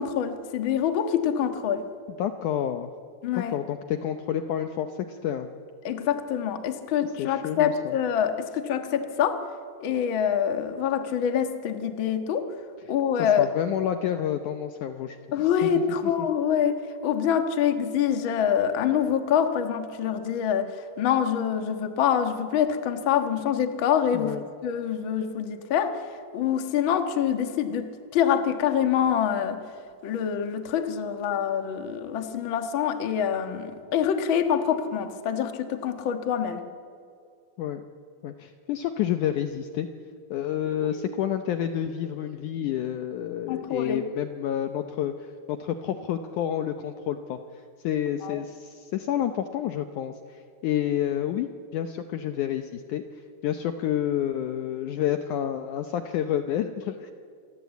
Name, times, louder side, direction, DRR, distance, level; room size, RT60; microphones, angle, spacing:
voice 1, 0.0-1.8 3.2-3.6 5.8-9.4 9.8-12.5 12.9-13.5 15.3-24.4 24.6-26.0 26.3-29.6 30.0-36.6 40.8-40.9 43.5-44.0 48.2-48.4, left 8 dB, 50° left, 7 dB, 1.6 m, -25 dB
voice 2, 2.2-2.9 3.3-5.5 7.2-8.0 13.2-15.2 15.6-15.8 16.2-16.3 24.1-24.4 37.6-37.8 38.2-39.9 40.3-47.4 47.8-53.0 53.4-57.1, left 10 dB, 70° left, 7 dB, 2.0 m, -29 dB
27.5 x 19.5 x 8.3 m, 2.4 s
omnidirectional pair, 4.2 m